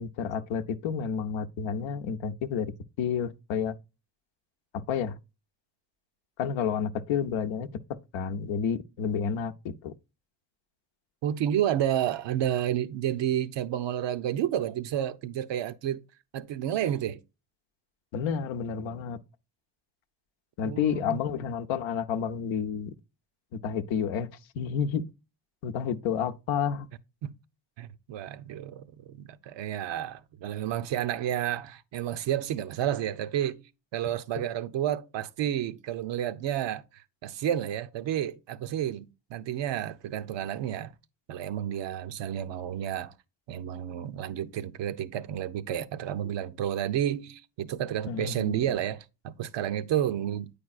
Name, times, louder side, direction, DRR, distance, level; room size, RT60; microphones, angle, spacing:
voice 1, 0.0-2.7 3.0-3.8 4.7-5.2 6.4-7.7 8.1-9.9 18.1-19.2 20.6-22.9 23.6-24.3 24.5-25.0 25.6-26.9 48.1-48.6, left 7 dB, 85° left, 0.7 m, -30 dB
voice 2, 11.2-16.0 16.3-17.2 20.6-21.2 27.2-27.3 27.8-33.6 33.9-40.9 41.3-43.1 43.5-50.5, right 11 dB, 70° right, 0.7 m, -31 dB
8.6 x 5.0 x 2.4 m
supercardioid pair, 60°, 45 cm